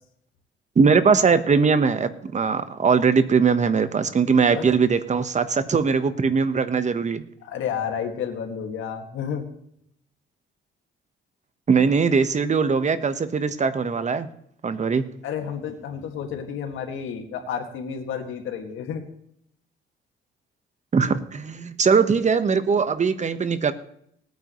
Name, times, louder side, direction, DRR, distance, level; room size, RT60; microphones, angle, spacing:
voice 1, 0.8-7.2 11.7-14.3 14.6-15.0 20.9-23.7, right 5 dB, 35° right, 11 dB, 1.2 m, -20 dB
voice 2, 7.4-9.5 15.2-19.0, left 7 dB, 85° left, 4 dB, 2.1 m, -31 dB
19.5 x 9.5 x 3.2 m, 0.70 s
cardioid pair, 90°, 20 cm